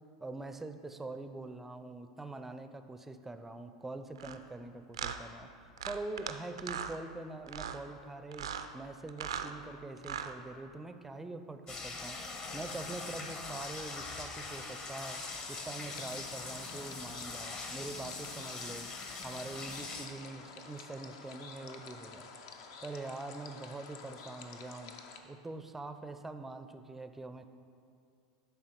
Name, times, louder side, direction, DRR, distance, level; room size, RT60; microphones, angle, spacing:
voice 1, 0.2-5.5 5.8-12.2 12.5-15.2 15.5-18.9 19.2-22.3 22.8-27.5, right 2 dB, 10° right, 9 dB, 0.4 m, -44 dB
sound 1, 4.2-4.4 4.9-5.2 5.8-6.3 6.6-7.0 7.5-7.8 8.3-8.7 9.1-9.5 10.0-10.3, right 8 dB, 80° right, 0.4 m, -38 dB
sound 2, 11.7-20.1, left 3 dB, 35° left, 0.9 m, -42 dB
sound 3, 15.1-25.2, left 5 dB, 60° left, 0.6 m, -50 dB
11.0 x 3.6 x 4.4 m, 2.3 s
hypercardioid pair, 90°, 3 cm